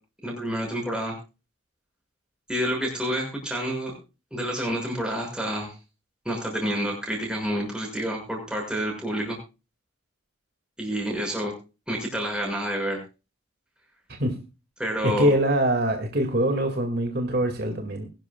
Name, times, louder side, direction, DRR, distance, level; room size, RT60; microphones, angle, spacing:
voice 1, 0.2-1.2 2.5-3.9 4.3-5.7 6.2-9.4 10.8-11.5 11.9-13.0 14.8-15.3, equal, 5° right, 0 dB, 6.3 m, -28 dB
voice 2, 15.0-18.1, right 1 dB, 55° right, 4 dB, 2.3 m, -23 dB
22.0 x 11.0 x 2.4 m, 0.31 s
head